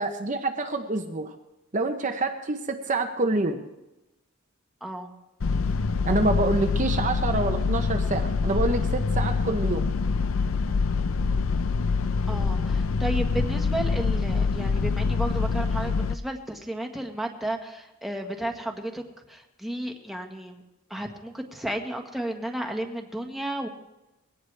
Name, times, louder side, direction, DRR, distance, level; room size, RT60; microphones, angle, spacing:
voice 1, 0.0-1.3 1.7-3.6 6.0-9.9 12.5-12.6, right 2 dB, 35° right, 4 dB, 0.9 m, -27 dB
voice 2, 4.8-5.1 12.3-19.0 19.3-20.6 20.9-23.7, right 1 dB, ahead, 2 dB, 1.5 m, -33 dB
sound 1, 5.4-16.1, left 4 dB, 70° left, 0.6 m, -25 dB
22.0 x 17.5 x 3.4 m, 0.99 s
head